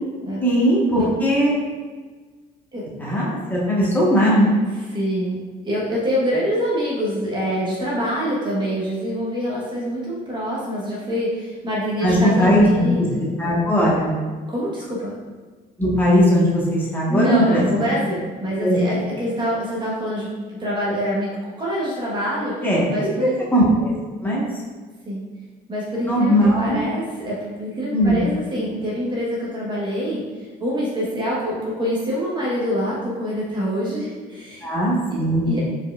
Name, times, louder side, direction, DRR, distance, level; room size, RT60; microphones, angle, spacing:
voice 1, 0.4-1.5 3.0-4.5 12.0-12.9 13.4-14.1 15.8-17.6 18.6-18.8 22.6-22.8 23.2-23.9 24.2-24.5 26.1-26.9 27.9-28.3 34.6-35.6, equal, 10° left, -7 dB, 1.4 m, -18 dB
voice 2, 4.9-13.3 14.5-15.1 17.1-20.3 20.6-23.4 25.0-25.2 25.7-30.2 30.6-34.7 35.5-35.6, equal, 25° right, -6 dB, 1.2 m, -25 dB
4.6 x 4.6 x 2.4 m, 1.4 s
cardioid pair, 110°, 17 cm